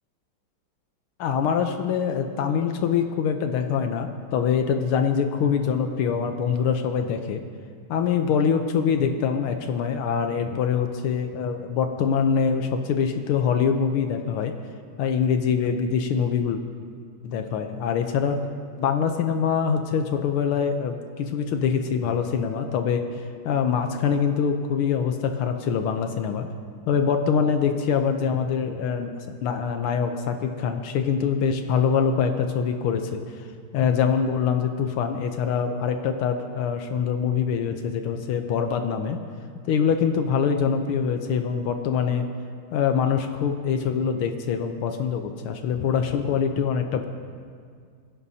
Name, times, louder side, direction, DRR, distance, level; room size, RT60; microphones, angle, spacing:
voice 1, 1.2-7.4 7.9-14.5 15.0-16.6 17.2-18.4 18.8-26.5 26.9-29.1 29.4-39.2 39.6-42.3 42.7-47.1, left 6 dB, 80° left, 6 dB, 1.7 m, -24 dB
22.0 x 16.5 x 2.8 m, 2.1 s
omnidirectional pair, 2.3 m